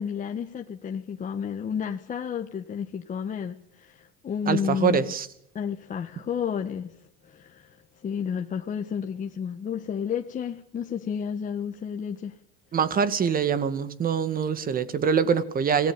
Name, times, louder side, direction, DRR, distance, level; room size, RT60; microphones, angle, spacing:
voice 1, 0.0-5.1 5.5-6.9 7.2-12.3, left 7 dB, 25° left, 1.5 m, -31 dB
voice 2, 4.5-5.3 12.7-15.9, right 6 dB, 30° right, 2.1 m, -24 dB
26.5 x 18.5 x 8.9 m
supercardioid pair, 120°, 29 cm